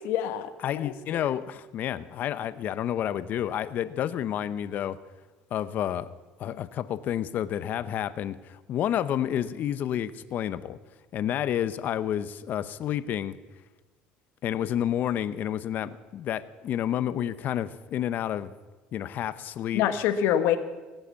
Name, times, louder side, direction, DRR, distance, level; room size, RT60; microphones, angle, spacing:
voice 1, 0.0-0.5 0.8-1.2 19.7-20.6, left 10 dB, 75° left, 9 dB, 1.2 m, -26 dB
voice 2, 0.6-5.0 5.5-6.1 6.4-10.8 11.1-13.4 14.4-18.5 18.9-19.8, left 10 dB, 50° left, 14 dB, 0.7 m, -30 dB
18.0 x 7.9 x 7.0 m, 1.2 s
cardioid pair, 115°, 4 cm